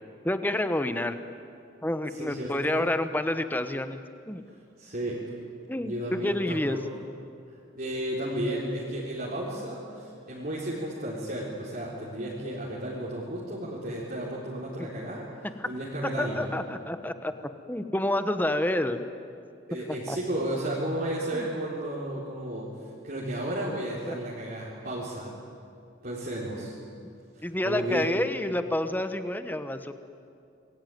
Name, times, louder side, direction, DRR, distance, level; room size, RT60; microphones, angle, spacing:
voice 1, 0.2-1.2 1.8-4.4 5.7-6.8 14.8-14.9 15.6-15.7 16.2-17.3 17.7-19.0 19.9-20.2 21.3-21.5 24.1-24.2 27.4-29.9, left 1 dB, 10° left, 9 dB, 1.1 m, -29 dB
voice 2, 2.1-2.9 4.8-5.2 5.8-6.8 7.7-16.5 19.7-25.3 26.0-26.8 27.3-28.1, right 1 dB, 45° right, -7 dB, 4.1 m, -33 dB
27.0 x 21.5 x 9.3 m, 2.4 s
head